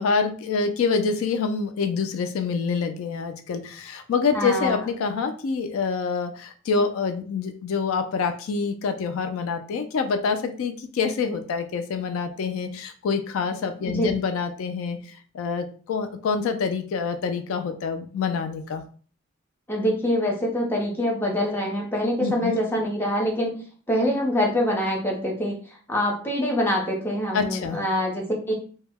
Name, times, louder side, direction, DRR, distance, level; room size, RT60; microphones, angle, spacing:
voice 1, 0.0-15.0 15.3-18.8 22.2-22.6 27.3-27.8, left 5 dB, 75° left, 7 dB, 0.3 m, -26 dB
voice 2, 4.3-4.8 13.9-14.1 19.7-28.5, equal, 10° left, -1 dB, 0.5 m, -25 dB
2.2 x 2.0 x 3.3 m, 0.42 s
head